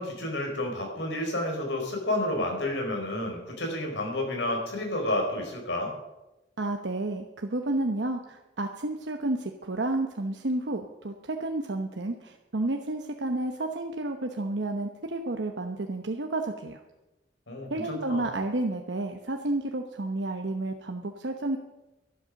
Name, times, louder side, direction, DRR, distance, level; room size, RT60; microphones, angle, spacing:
voice 1, 0.0-5.9 17.5-18.3, left 1 dB, 90° left, 2 dB, 4.4 m, -30 dB
voice 2, 6.6-16.8 17.7-21.6, right 2 dB, 75° right, 4 dB, 0.9 m, -31 dB
12.0 x 11.5 x 6.4 m, 1.0 s
head